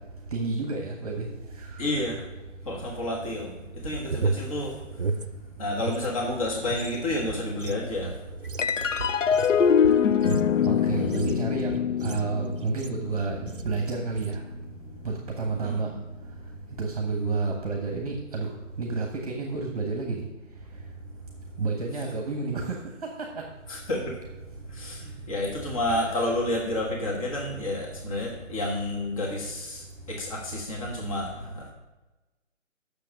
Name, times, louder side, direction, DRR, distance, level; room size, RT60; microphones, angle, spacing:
voice 1, 0.3-1.3 10.7-13.4 13.6-14.4 15.0-15.9 16.8-18.5 18.8-20.2 21.6-22.7 23.0-23.4, right 4 dB, 30° right, 0 dB, 1.3 m, -30 dB
voice 2, 1.8-2.3 2.6-4.7 5.6-8.1 10.9-11.1 15.6-16.0 23.7-24.1 24.7-31.7, left 1 dB, 25° left, -1 dB, 1.4 m, -30 dB
sound 1, 3.7-6.1 6.4-13.1 13.5-13.8 14.1-14.5, right 4 dB, 45° right, 0.6 m, -34 dB
sound 2, 8.6-15.3, left 7 dB, 75° left, 0.5 m, -25 dB
8.1 x 6.6 x 6.3 m, 1.1 s
figure-of-eight pair, 155°, 38 cm